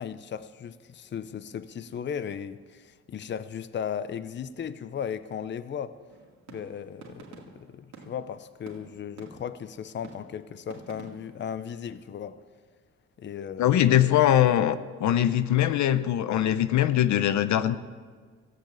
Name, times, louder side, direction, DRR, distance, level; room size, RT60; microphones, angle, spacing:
voice 1, 0.0-5.9 6.5-12.4 13.2-14.1, left 8 dB, 40° left, 0.6 m, -36 dB
sound 1, 6.1-9.7 10.0-11.5, right 4 dB, 65° right, 2.3 m, -49 dB
voice 2, 13.6-17.8, left 11 dB, 70° left, 0.7 m, -22 dB
14.5 x 8.0 x 8.8 m
cardioid pair, 90°, 30 cm